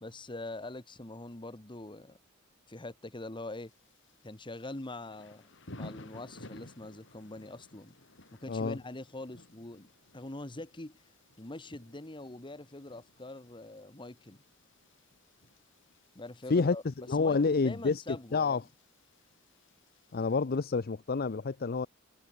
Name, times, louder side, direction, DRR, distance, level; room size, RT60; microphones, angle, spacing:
voice 1, 0.0-2.2 2.7-3.7 4.2-5.5 5.7-7.9 8.4-9.9 10.1-11.0 11.4-14.4 16.1-16.8 17.2-18.6, left 2 dB, 25° left, 1.4 m, -43 dB
Thunder / Rain, 3.5-20.4, left 1 dB, 65° left, 3.2 m, -55 dB
voice 2, 16.5-18.0 18.3-18.6 20.1-21.9, left 4 dB, 50° left, 0.6 m, -28 dB
head